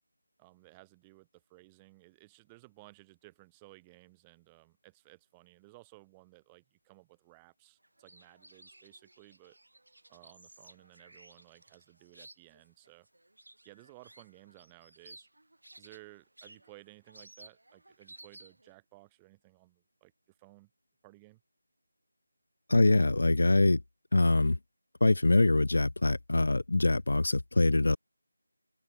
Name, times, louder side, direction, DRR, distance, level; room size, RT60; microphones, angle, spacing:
voice 1, 0.4-9.6 10.1-13.1 13.6-15.3 15.8-20.7 21.0-21.4, right 23 dB, 10° right, 4.2 m, -57 dB
sound 1, 7.8-18.7, right 1 dB, 80° right, 6.4 m, -57 dB
voice 2, 22.7-23.8 24.1-24.6 25.0-28.0, left 2 dB, 70° left, 0.5 m, -24 dB
open air
figure-of-eight pair, 165°, 0 cm